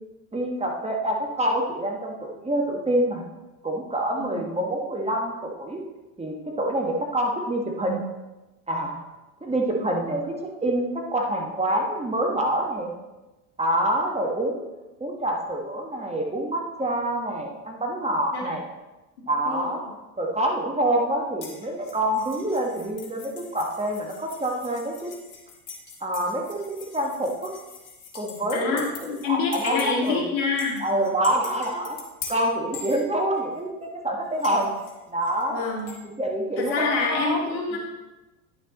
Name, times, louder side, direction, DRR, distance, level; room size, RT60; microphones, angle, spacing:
voice 1, 0.3-3.2 3.6-5.8 6.2-8.0 8.7-9.0 9.4-10.4 10.6-12.9 13.6-14.6 15.0-18.6 19.3-19.8 20.2-25.1 26.0-27.5 28.1-30.2 30.8-32.0 32.3-34.7 35.1-35.7 36.2-37.4 37.7-37.8, right 1 dB, 15° right, 0 dB, 1.5 m, -26 dB
sound 1, 21.4-29.3 29.5-30.1 30.6-33.6 34.4-36.0, left 5 dB, 45° left, 1.8 m, -42 dB
voice 2, 28.5-30.8 35.5-35.9 36.6-37.8, left 4 dB, 65° left, -2 dB, 2.3 m, -26 dB
10.0 x 6.6 x 3.0 m, 1.1 s
hypercardioid pair, 70°, 44 cm